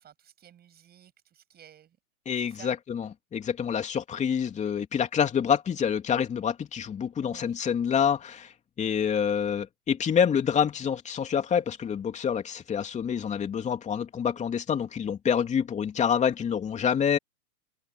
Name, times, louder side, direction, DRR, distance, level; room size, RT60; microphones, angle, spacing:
voice 1, 0.0-2.0 2.4-2.7 7.2-7.6, right 10 dB, 20° right, 7.9 m, -53 dB
voice 2, 2.3-8.5 8.8-17.2, left 7 dB, 15° left, 2.9 m, -27 dB
hypercardioid pair, 135°, 44 cm